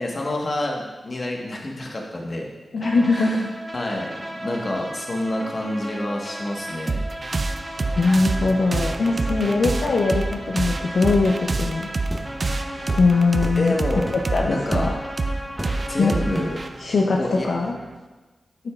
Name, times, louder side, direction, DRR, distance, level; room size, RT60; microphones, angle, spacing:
voice 1, 0.0-2.5 3.1-7.0 13.6-14.1 14.5-14.9 15.9-16.6 17.2-17.5, left 1 dB, 50° left, 0 dB, 1.3 m, -28 dB
voice 2, 2.7-3.3 8.0-11.9 13.0-13.7 14.3-14.9 16.0-16.1 16.8-17.8, left 3 dB, 80° left, -1 dB, 0.6 m, -21 dB
sound 1, 2.8-16.5, equal, 25° right, 1.5 m, -35 dB
sound 2, 6.9-18.0, right 3 dB, 55° right, 0.4 m, -28 dB
sound 3, 11.1-11.3 12.1-12.3 12.9-13.0 13.4-13.6 14.1-14.3 14.7-14.9 15.6-15.9 16.3-16.6, equal, 10° right, 1.3 m, -31 dB
9.1 x 6.7 x 2.4 m, 1.2 s
cardioid pair, 50°, 0 cm